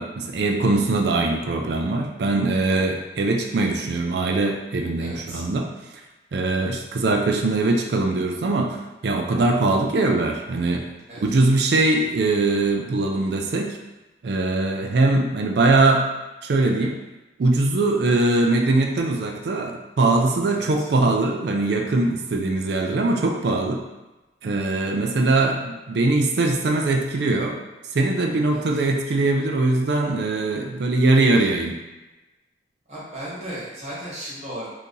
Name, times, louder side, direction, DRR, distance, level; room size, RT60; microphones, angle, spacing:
voice 1, 0.0-5.7 6.3-8.8 9.0-10.9 11.2-13.8 14.2-16.0 16.4-16.9 17.4-23.8 24.4-27.6 27.9-31.7, right 2 dB, 65° right, 2 dB, 0.4 m, -21 dB
voice 2, 5.0-5.4 11.1-11.4 20.5-20.9 28.5-28.8 31.0-31.2 32.9-34.7, right 1 dB, 40° right, -8 dB, 1.0 m, -36 dB
2.8 x 2.6 x 3.7 m, 1.1 s
head